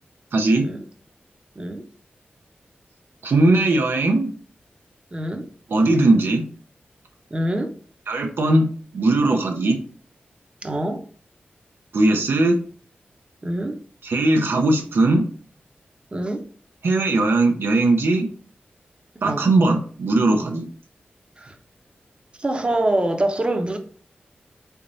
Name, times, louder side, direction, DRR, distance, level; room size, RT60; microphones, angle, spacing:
voice 1, 0.3-0.7 3.2-4.3 5.7-6.5 8.1-9.8 11.9-12.6 14.0-15.3 16.8-18.3 19.2-20.7, right 2 dB, 80° right, 0.6 m, -19 dB
voice 2, 1.6-1.9 5.1-5.5 7.3-7.7 10.6-11.0 13.4-13.8 16.1-16.4 19.2-19.5 21.4-21.6 22.4-23.8, right 1 dB, 30° right, 0.7 m, -25 dB
3.9 x 3.4 x 2.6 m
wide cardioid pair, 85°, 4 cm